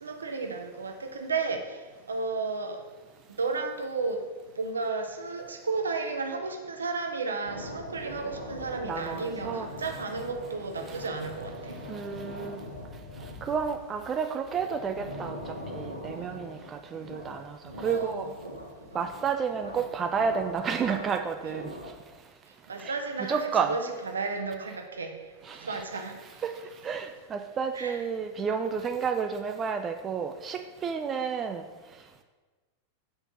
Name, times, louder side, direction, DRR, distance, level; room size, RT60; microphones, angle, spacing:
voice 1, 0.0-1.8 2.1-2.8 3.3-4.2 4.6-11.7 17.8-18.3 22.7-25.2 25.6-26.1 27.7-28.0, right 4 dB, 70° right, 5 dB, 0.8 m, -33 dB
sound 1, 7.4-22.1, left 1 dB, 90° left, 0.9 m, -42 dB
voice 2, 8.8-9.7 10.9-11.0 11.9-12.6 13.4-18.3 18.9-21.7 22.8-22.9 23.2-23.8 25.4-25.8 26.2-26.5 26.8-31.6, right 6 dB, 25° right, 6 dB, 0.4 m, -31 dB
5.6 x 4.0 x 5.8 m, 1.3 s
figure-of-eight pair, 90°, 0 cm